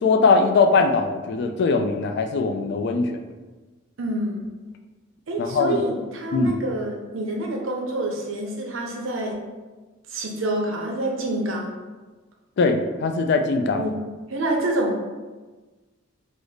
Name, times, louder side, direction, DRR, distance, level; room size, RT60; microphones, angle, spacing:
voice 1, 0.0-3.3 5.4-5.8 6.3-6.5 12.6-13.9, left 4 dB, 55° left, 5 dB, 0.3 m, -21 dB
voice 2, 4.0-4.5 5.3-9.4 10.1-11.8 13.7-14.0 14.3-15.1, right 1 dB, 75° right, 0 dB, 0.6 m, -27 dB
3.2 x 2.0 x 3.8 m, 1.3 s
head